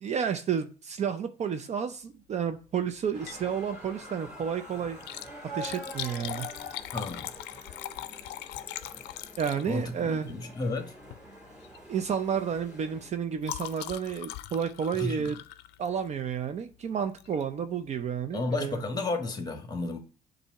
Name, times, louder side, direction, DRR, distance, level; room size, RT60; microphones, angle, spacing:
voice 1, 0.0-5.0 5.5-6.5 9.4-10.3 11.9-15.4 15.8-18.8, right 7 dB, 40° right, 0.5 m, -31 dB
Liquid, 3.1-3.5 3.9-4.0 4.9-10.0 11.0-11.3 11.6-11.9 12.2-16.2 17.2-17.4 18.0-18.1 18.3-18.4, left 14 dB, 85° left, 0.4 m, -41 dB
sound 1, 3.1-13.1, right 1 dB, 5° right, 2.8 m, -46 dB
voice 2, 6.9-7.3 9.7-10.9 15.0-15.3 18.3-20.0, left 3 dB, 25° left, 1.3 m, -32 dB
7.0 x 2.7 x 5.6 m
cardioid pair, 110°, 17 cm